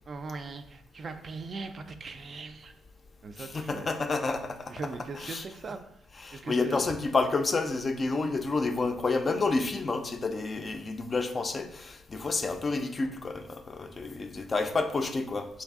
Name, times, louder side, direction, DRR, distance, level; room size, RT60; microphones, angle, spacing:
voice 1, 0.1-2.7 3.2-3.9 4.7-6.1 6.3-7.0, right 4 dB, 45° right, 7 dB, 0.3 m, -40 dB
voice 2, 3.4-4.7 5.1-5.4 6.2-15.6, left 3 dB, 35° left, 7 dB, 0.4 m, -30 dB
3.2 x 2.6 x 3.5 m, 0.72 s
cardioid pair, 90°, 0 cm